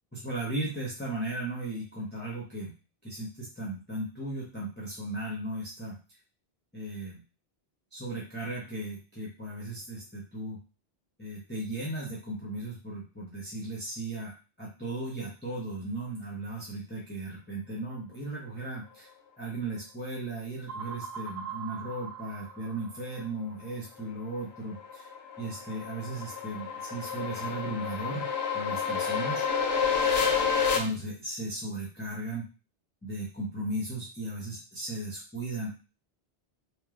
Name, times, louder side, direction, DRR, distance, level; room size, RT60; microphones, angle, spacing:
voice 1, 0.1-2.7 3.0-6.0 6.7-7.2 7.9-10.6 11.2-14.3 14.6-19.1 19.4-25.1 25.4-28.3 28.5-29.4 30.7-32.4 33.0-35.8, right 2 dB, 10° left, -6 dB, 0.6 m, -36 dB
sound 1, 20.7-23.3, right 6 dB, 20° right, 1.3 m, -41 dB
sound 2, 24.2-30.8, left 6 dB, 85° left, 0.8 m, -29 dB
3.1 x 2.1 x 2.4 m, 0.33 s
omnidirectional pair, 1.0 m